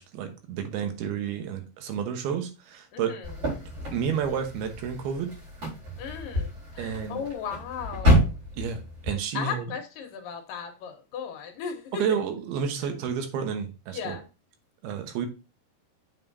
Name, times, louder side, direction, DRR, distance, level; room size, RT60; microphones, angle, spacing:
voice 1, 0.0-3.1 3.9-5.3 6.8-7.2 8.6-9.7 11.9-14.2 14.8-15.3, right 7 dB, 90° right, 3.2 m, -30 dB
voice 2, 2.9-3.3 6.0-8.3 9.3-12.2 13.9-14.3, left 7 dB, 70° left, 2.6 m, -36 dB
sound 1, 3.2-9.1, equal, 35° right, 4.6 m, -28 dB
7.3 x 6.8 x 2.7 m
omnidirectional pair, 4.3 m